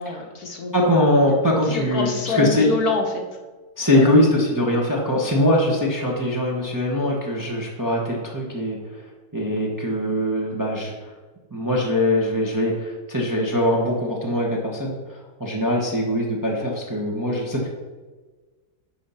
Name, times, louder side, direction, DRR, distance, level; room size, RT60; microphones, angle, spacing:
voice 1, 0.0-0.7 1.7-3.2 3.9-4.1, left 3 dB, 60° left, 2 dB, 1.5 m, -26 dB
voice 2, 0.7-2.7 3.8-9.0 9.3-11.1 11.5-17.7, left 1 dB, 10° right, -2 dB, 1.1 m, -22 dB
10.5 x 3.9 x 5.7 m, 1.3 s
omnidirectional pair, 2.0 m